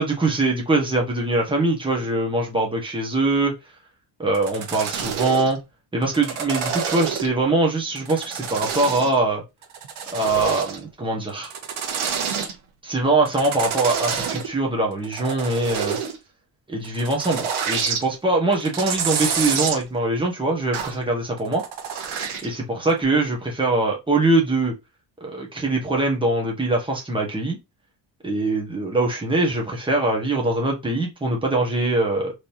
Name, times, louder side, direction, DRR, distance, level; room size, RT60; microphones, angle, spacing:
voice 1, 0.0-3.5 4.2-5.6 5.9-9.4 10.1-11.5 12.8-16.0 16.7-21.6 22.4-24.7 25.2-27.6 28.2-32.3, right 2 dB, 10° right, 1.4 m, -22 dB
sound 1, 4.3-5.5 6.0-7.4 7.9-9.2 9.6-10.8 11.3-12.5 13.2-14.5 14.9-16.2 16.8-18.0 18.5-19.8 20.7-21.0 21.4-22.5 22.9-23.0, right 7 dB, 85° right, 1.1 m, -27 dB
3.8 x 3.3 x 2.8 m
cardioid pair, 130°, 47 cm